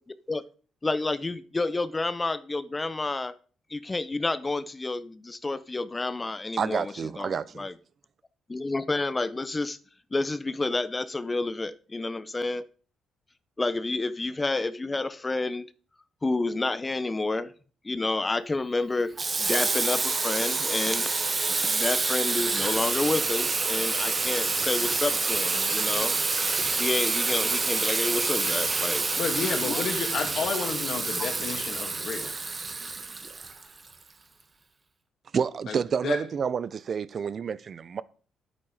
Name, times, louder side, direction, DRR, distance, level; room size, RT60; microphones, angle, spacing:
voice 1, 0.8-3.4 3.7-7.7 8.5-9.8 10.1-12.6 13.6-15.7 16.2-17.5 17.8-21.1 21.5-26.2 26.8-29.1 29.6-29.8 31.2-31.3, left 3 dB, 20° left, 0.7 m, -29 dB
voice 2, 6.6-7.7 35.3-38.0, right 6 dB, 50° right, 0.7 m, -29 dB
Water tap faucet / Sink (filling or washing), 19.2-33.9, right 3 dB, 30° right, 1.4 m, -27 dB
voice 3, 29.1-32.3 35.7-36.2, left 5 dB, 60° left, 2.8 m, -31 dB
10.0 x 8.5 x 5.0 m
cardioid pair, 90°, 0 cm